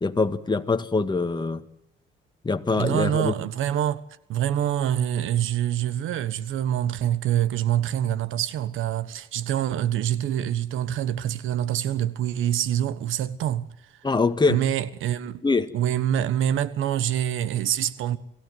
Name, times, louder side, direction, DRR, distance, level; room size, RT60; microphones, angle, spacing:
voice 1, 0.0-1.6 2.4-3.3 14.0-14.6 15.4-15.7, left 3 dB, 20° left, 1.9 m, -23 dB
voice 2, 2.8-4.0 4.3-13.7 14.5-15.4 15.7-18.2, right 11 dB, 85° right, 1.4 m, -25 dB
27.0 x 15.5 x 9.4 m
cardioid pair, 90°, 20 cm